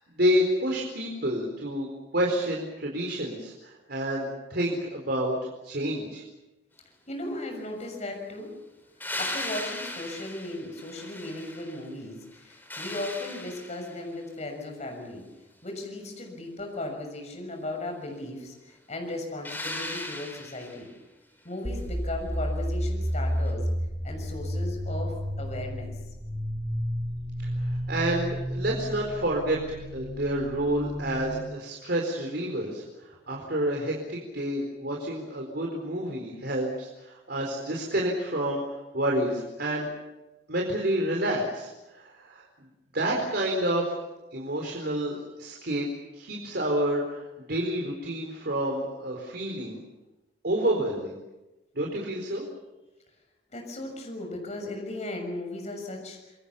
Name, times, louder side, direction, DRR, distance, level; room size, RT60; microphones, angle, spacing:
voice 1, 0.0-1.9 2.1-5.3 5.6-6.2 27.4-32.8 33.3-39.9 40.5-42.4 42.9-44.0 44.3-45.8 46.1-49.8 50.4-51.2 51.7-52.5, right 1 dB, 65° right, 0 dB, 4.3 m, -29 dB
voice 2, 7.1-8.5 9.2-15.2 15.6-20.9 21.4-23.7 24.0-25.9 33.4-33.5 53.5-56.3, left 1 dB, 40° left, 2 dB, 6.6 m, -36 dB
sound 1, 9.0-11.9 12.3-14.1 19.4-20.9 23.5-23.6, left 1 dB, 10° left, 4.7 m, -37 dB
sound 2, 21.6-31.4, equal, 20° right, 3.2 m, -31 dB
28.0 x 23.0 x 7.1 m, 1.0 s
head